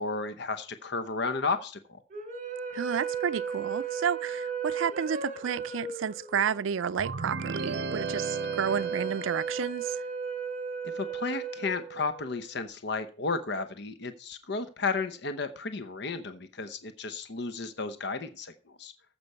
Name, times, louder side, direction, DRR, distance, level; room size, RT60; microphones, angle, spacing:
voice 1, 0.0-2.0 10.8-18.9, left 4 dB, 60° left, 0.9 m, -33 dB
sound 1, 2.1-12.5, right 6 dB, 35° right, 2.9 m, -35 dB
voice 2, 2.7-10.0, right 7 dB, 80° right, 0.4 m, -31 dB
sound 2, 7.0-9.8, right 4 dB, 55° right, 0.9 m, -35 dB
14.5 x 6.0 x 5.5 m
head